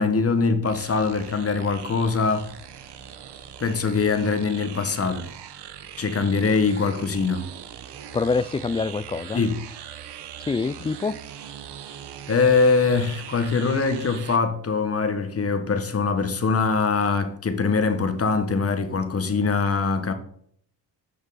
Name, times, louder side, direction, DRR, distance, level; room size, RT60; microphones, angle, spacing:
voice 1, 0.0-2.5 3.6-5.3 6.0-7.5 9.3-9.6 12.3-20.1, left 4 dB, 30° left, 1.5 m, -23 dB
sound 1, 0.6-14.4, right 9 dB, 65° right, 1.1 m, -41 dB
voice 2, 8.1-9.4 10.5-11.2, left 4 dB, 15° left, 0.3 m, -25 dB
14.0 x 5.1 x 4.2 m
cardioid pair, 75°, 44 cm